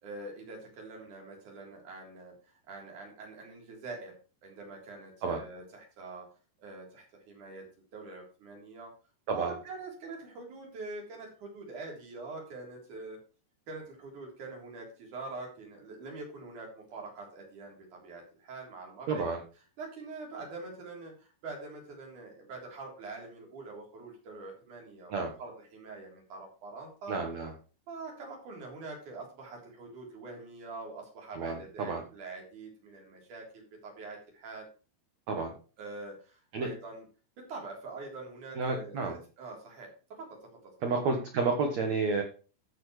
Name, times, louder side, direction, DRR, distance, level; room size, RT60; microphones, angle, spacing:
voice 1, 0.0-4.1 4.4-6.3 6.6-7.7 7.9-8.9 9.3-13.2 13.7-19.2 19.8-27.2 27.9-34.7 35.8-37.0 37.4-39.9 40.2-40.4, right 3 dB, 45° right, 0 dB, 4.7 m, -44 dB
voice 2, 19.1-19.4 25.1-25.3 27.1-27.5 31.3-32.0 35.3-35.5 36.5-36.7 38.5-39.2 40.8-42.2, right 4 dB, 80° right, 4 dB, 1.5 m, -30 dB
14.5 x 7.0 x 3.2 m, 0.35 s
omnidirectional pair, 5.4 m